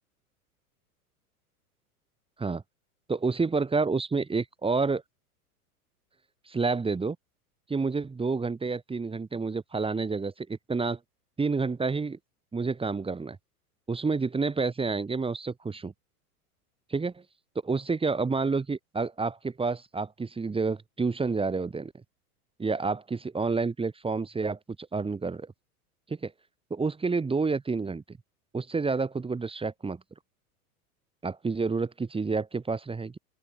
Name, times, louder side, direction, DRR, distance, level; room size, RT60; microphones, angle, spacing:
voice 1, 3.1-5.0 6.5-7.2 7.7-11.0 11.4-12.2 12.5-13.4 13.9-15.9 16.9-17.2 17.6-21.9 22.6-25.5 26.1-26.3 26.7-28.2 28.5-30.0 31.2-33.2, right 4 dB, 10° right, 2.4 m, -29 dB
open air
hypercardioid pair, 95°, 45 cm